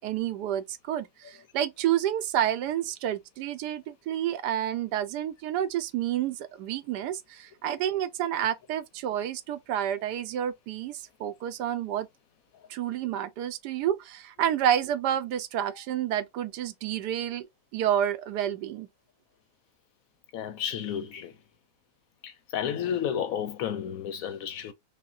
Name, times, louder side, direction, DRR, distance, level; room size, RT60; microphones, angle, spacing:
voice 1, 0.0-12.1 12.7-17.5 17.7-18.9, right 10 dB, 90° right, 1.2 m, -29 dB
voice 2, 20.3-21.3 22.2-24.7, left 9 dB, 70° left, 0.9 m, -32 dB
5.4 x 2.1 x 2.4 m
omnidirectional pair, 1.7 m